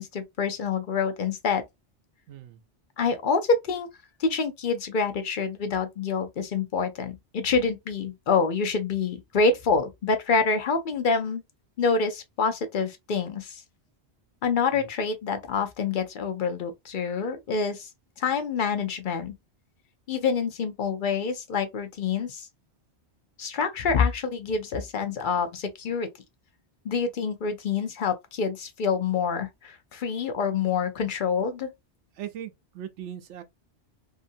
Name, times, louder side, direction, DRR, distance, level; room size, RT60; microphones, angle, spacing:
voice 1, 0.0-1.6 3.0-3.9 4.2-11.4 11.8-13.6 14.4-17.9 18.2-19.3 20.1-22.5 23.4-26.1 26.8-31.7, left 5 dB, 55° left, 0.7 m, -26 dB
voice 2, 32.2-33.4, right 10 dB, 85° right, 0.9 m, -39 dB
2.7 x 2.6 x 2.6 m
omnidirectional pair, 1.2 m